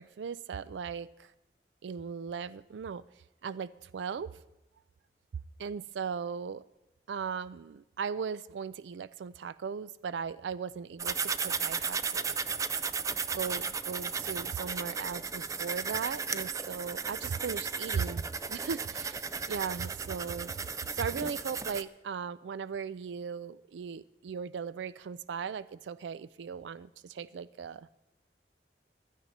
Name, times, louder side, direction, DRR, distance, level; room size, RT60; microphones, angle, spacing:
voice 1, 0.0-1.3 1.8-3.0 3.4-4.3 5.6-6.6 7.1-12.7 13.3-18.2 18.5-20.5 20.9-27.9, right 6 dB, 90° right, 17 dB, 0.4 m, -38 dB
sound 1, 11.0-21.8, right 5 dB, 20° right, 0.4 m, -35 dB
15.5 x 12.5 x 4.1 m, 0.95 s
head